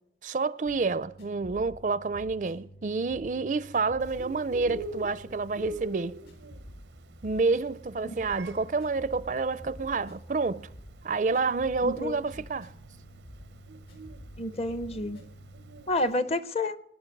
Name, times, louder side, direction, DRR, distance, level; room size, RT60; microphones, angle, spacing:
voice 1, 0.2-6.2 7.2-10.6 11.0-12.7, right 4 dB, 45° right, 0.4 m, -29 dB
sound 1, 0.6-15.8, equal, 65° left, 4.2 m, -49 dB
Bird, 4.0-16.1, right 2 dB, 80° right, 0.6 m, -44 dB
voice 2, 11.8-12.2 14.4-15.2 15.9-16.8, left 2 dB, 35° left, 0.7 m, -29 dB
21.0 x 10.5 x 5.3 m
head